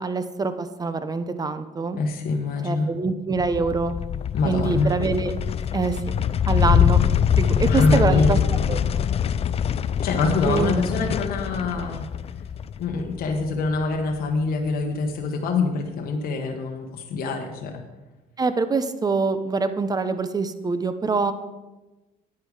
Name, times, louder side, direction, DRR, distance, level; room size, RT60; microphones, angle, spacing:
voice 1, 0.0-2.0 2.6-3.9 4.4-5.3 5.7-6.0 6.5-7.0 7.4-9.0 10.5-10.8 18.4-21.3, right 4 dB, 20° right, 11 dB, 0.8 m, -25 dB
voice 2, 2.0-2.9 4.3-4.9 7.6-8.3 10.0-12.1 12.8-17.8, left 3 dB, 60° left, 2 dB, 1.2 m, -24 dB
sound 1, 3.4-14.0, left 9 dB, 35° left, 0.4 m, -24 dB
9.9 x 9.0 x 4.8 m, 1.1 s
cardioid pair, 110°, 17 cm